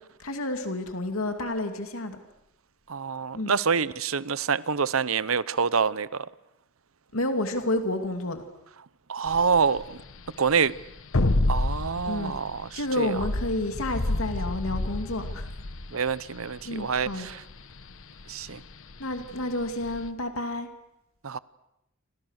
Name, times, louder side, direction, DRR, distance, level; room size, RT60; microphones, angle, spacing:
voice 1, 0.2-2.2 3.3-3.5 7.1-8.4 12.0-12.4 12.7-15.5 16.6-17.3 19.0-20.7, left 1 dB, 90° left, 2.6 m, -30 dB
voice 2, 2.9-6.3 9.1-9.8 10.4-10.7 11.5-13.2 15.9-17.4 18.3-18.6 21.2-21.4, right 5 dB, 75° right, 0.9 m, -26 dB
sound 1, 9.3-20.1, left 2 dB, 70° left, 1.2 m, -30 dB
28.5 x 26.0 x 6.6 m
head